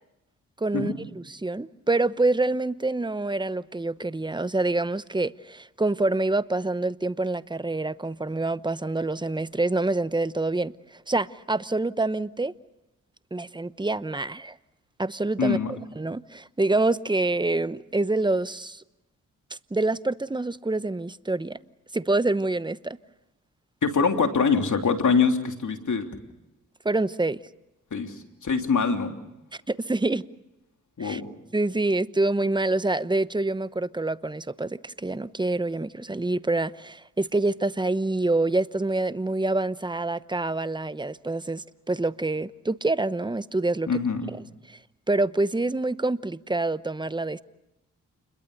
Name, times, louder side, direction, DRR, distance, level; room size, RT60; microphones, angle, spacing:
voice 1, 0.6-0.9 1.3-10.7 11.1-12.5 13.3-14.6 15.0-18.8 19.5-21.6 21.9-23.0 26.8-27.4 29.7-30.2 31.0-31.2 31.5-43.9 44.7-44.8 45.1-47.4, right 2 dB, 15° right, 0.9 m, -26 dB
voice 2, 15.4-15.7 23.8-26.1 27.9-29.1 31.0-31.3 43.9-44.3, left 5 dB, 60° left, 3.2 m, -24 dB
29.0 x 22.0 x 6.7 m
cardioid pair, 50°, 34 cm